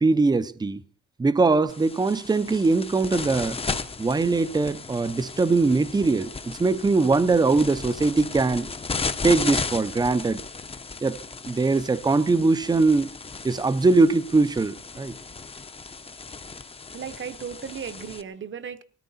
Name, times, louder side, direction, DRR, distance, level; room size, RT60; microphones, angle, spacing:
voice 1, 0.0-0.8 1.2-3.6 4.0-8.7 9.2-10.4 11.0-11.2 11.5-13.1 13.4-15.1, right 3 dB, 15° right, 0.6 m, -21 dB
sound 1, 1.7-18.2, left 4 dB, 20° left, 0.7 m, -35 dB
voice 2, 16.9-18.8, right 7 dB, 40° right, 0.9 m, -35 dB
19.5 x 13.5 x 4.2 m
cardioid pair, 145°, 29 cm